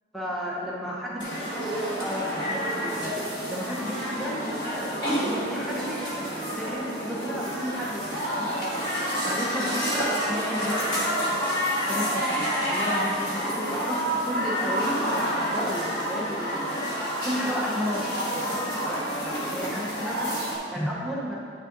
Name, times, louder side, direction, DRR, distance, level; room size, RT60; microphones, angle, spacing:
voice 1, 0.1-1.6 2.0-3.2 3.5-8.8 9.2-11.3 11.8-16.9 17.2-18.2 18.8-19.0 19.5-20.3 20.7-21.4, equal, ahead, -6 dB, 0.7 m, -33 dB
sound 1, 1.2-20.6, equal, 25° left, 1.9 m, -28 dB
10.5 x 6.4 x 2.5 m, 2.5 s
head